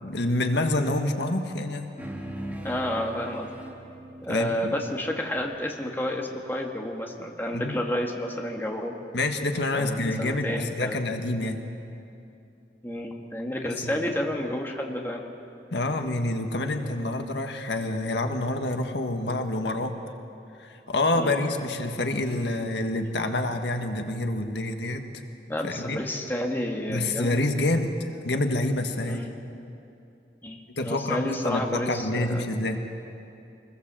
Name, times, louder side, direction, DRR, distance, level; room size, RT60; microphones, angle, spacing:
voice 1, 0.0-1.9 4.3-4.8 7.5-7.8 9.1-11.6 13.8-14.0 15.7-20.0 20.6-25.1 25.6-26.0 26.9-29.3 30.7-32.8, left 2 dB, 85° left, 5 dB, 1.6 m, -27 dB
sound 1, 2.0-6.7, right 1 dB, 10° right, 2.2 m, -41 dB
voice 2, 2.6-3.5 4.2-9.0 9.7-11.0 12.8-15.2 21.1-21.4 25.5-27.4 29.1-29.3 30.4-32.4, left 1 dB, 10° left, 1 dB, 1.7 m, -30 dB
25.0 x 20.5 x 7.6 m, 2.7 s
head